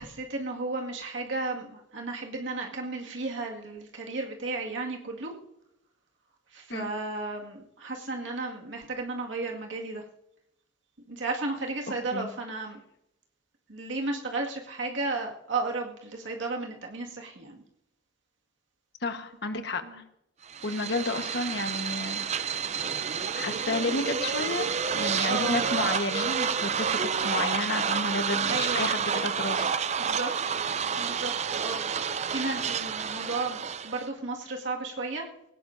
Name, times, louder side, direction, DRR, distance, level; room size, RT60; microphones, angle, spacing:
voice 1, 0.0-5.3 6.5-10.0 11.1-12.8 13.7-17.6 19.8-20.0 25.2-25.7 28.4-28.9 30.0-30.3 31.0-31.8 32.3-35.3, right 3 dB, 90° right, 0 dB, 2.0 m, -33 dB
voice 2, 19.0-20.0 20.6-22.2 23.4-24.7 24.9-29.7, left 2 dB, 65° left, 7 dB, 1.3 m, -31 dB
sound 1, 20.5-34.1, right 7 dB, 35° right, 0.5 m, -29 dB
20.5 x 17.5 x 2.7 m, 0.82 s
head